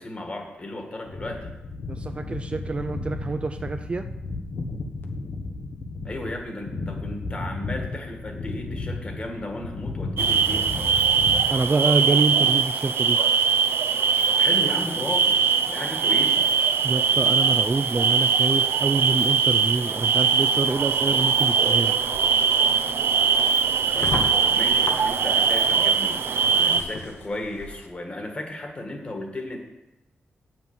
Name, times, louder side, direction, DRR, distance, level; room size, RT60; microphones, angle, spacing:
voice 1, 0.0-1.5 6.0-10.7 14.4-15.4 15.7-16.5 23.9-29.6, left 1 dB, 30° left, 3 dB, 1.8 m, -34 dB
sound 1, 1.1-12.2, left 3 dB, 65° left, 1.1 m, -34 dB
voice 2, 1.9-4.0 11.5-13.2 16.8-21.9, right 3 dB, 30° right, 8 dB, 0.4 m, -26 dB
sound 2, 10.2-26.8, right 6 dB, 80° right, 0.6 m, -21 dB
sound 3, 20.5-27.9, left 3 dB, 85° left, 1.2 m, -38 dB
9.0 x 6.2 x 7.2 m, 1.0 s
wide cardioid pair, 140°, 4 cm